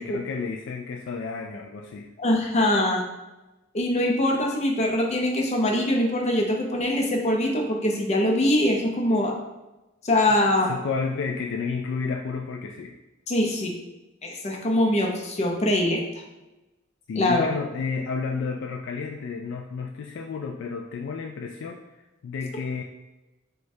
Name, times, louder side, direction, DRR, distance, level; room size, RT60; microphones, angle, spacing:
voice 1, 0.0-2.1 10.7-13.0 17.1-21.8 22.2-22.8, left 5 dB, 65° left, 2 dB, 0.3 m, -31 dB
voice 2, 2.2-3.0 3.7-9.3 10.0-10.8 13.3-13.7 14.2-16.0 17.2-17.5, left 1 dB, 35° left, 0 dB, 0.7 m, -23 dB
6.2 x 2.3 x 2.7 m, 1.0 s
head